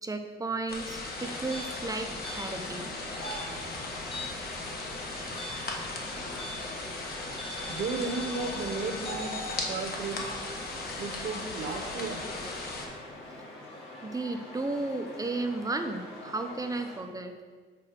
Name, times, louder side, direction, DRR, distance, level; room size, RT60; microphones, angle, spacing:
voice 1, 0.0-2.9 5.5-6.0 7.3-7.7 14.0-17.4, right 2 dB, 15° right, 6 dB, 0.7 m, -34 dB
sound 1, 0.7-12.9, left 2 dB, 50° left, 1.4 m, -38 dB
sound 2, 1.1-17.0, left 1 dB, 75° left, 2.1 m, -44 dB
sound 3, 1.4-4.5 4.8-6.8 7.4-9.6, left 1 dB, 30° left, 1.2 m, -42 dB
voice 2, 7.3-10.2 10.9-12.2, right 4 dB, 55° right, 4 dB, 1.0 m, -35 dB
5.9 x 4.4 x 5.7 m, 1.5 s
cardioid pair, 90°, 20 cm